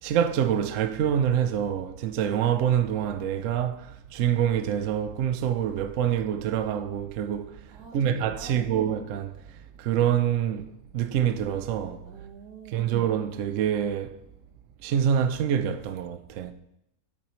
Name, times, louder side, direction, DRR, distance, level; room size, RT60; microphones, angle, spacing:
voice 1, 0.0-12.0 12.7-14.2 14.8-16.5, right 9 dB, 65° right, 0.9 m, -26 dB
voice 2, 7.7-8.7 12.0-12.9, right 5 dB, 90° right, 1.8 m, -47 dB
8.1 x 7.6 x 3.1 m
omnidirectional pair, 1.5 m